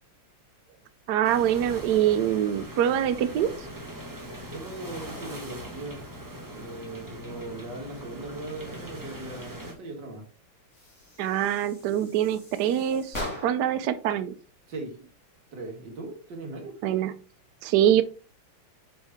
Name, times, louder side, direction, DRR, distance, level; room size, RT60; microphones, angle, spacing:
voice 1, 1.1-3.5 11.2-14.3 16.8-17.1 17.6-18.0, right 10 dB, 80° right, 11 dB, 0.9 m, -24 dB
sound 1, 1.2-9.7, equal, 10° right, 1.2 m, -41 dB
voice 2, 4.5-6.1 6.5-10.3 14.7-15.0 15.5-16.8, right 2 dB, 55° right, 2 dB, 2.2 m, -39 dB
sound 2, 10.7-13.8, left 1 dB, 35° left, 2.5 m, -40 dB
6.3 x 5.2 x 3.5 m, 0.36 s
omnidirectional pair, 2.4 m